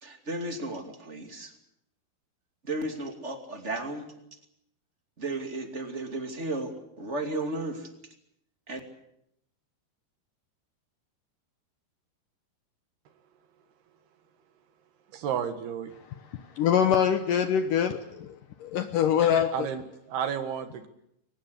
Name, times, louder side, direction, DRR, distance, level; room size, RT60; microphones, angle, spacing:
voice 1, 0.0-1.5 2.6-4.1 5.2-6.7 7.0-7.9 8.7-8.8, right 2 dB, 20° right, 5 dB, 2.1 m, -34 dB
voice 2, 15.1-15.9 19.5-20.9, right 8 dB, 70° right, 9 dB, 3.6 m, -32 dB
voice 3, 16.6-19.5, left 8 dB, 70° left, 9 dB, 2.2 m, -24 dB
23.5 x 20.0 x 8.3 m, 0.78 s
omnidirectional pair, 4.8 m